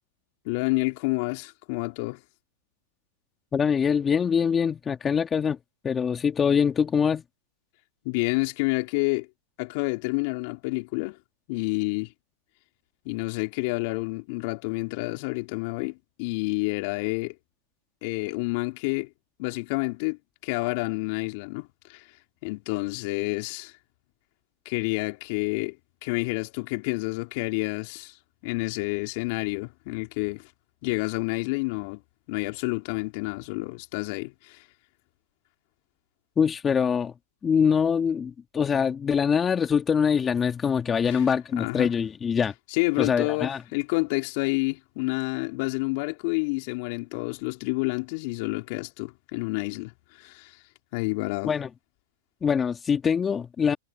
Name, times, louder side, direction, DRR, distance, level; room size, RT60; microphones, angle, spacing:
voice 1, 0.5-2.2 8.1-9.3 9.6-11.2 11.5-12.1 13.1-17.4 18.0-19.1 19.4-22.0 22.4-23.7 24.7-25.8 26.0-28.1 28.4-30.5 30.8-32.0 32.3-34.6 41.1-41.3 41.5-41.9 42.7-49.9 50.2-50.5 50.9-51.5, left 27 dB, 50° left, 3.5 m, -29 dB
voice 2, 3.5-5.6 5.8-7.2 36.4-37.1 37.4-42.5 43.0-43.6 51.5-51.7 52.4-53.8, left 7 dB, 20° left, 2.7 m, -24 dB
hypercardioid pair, 115°, 0 cm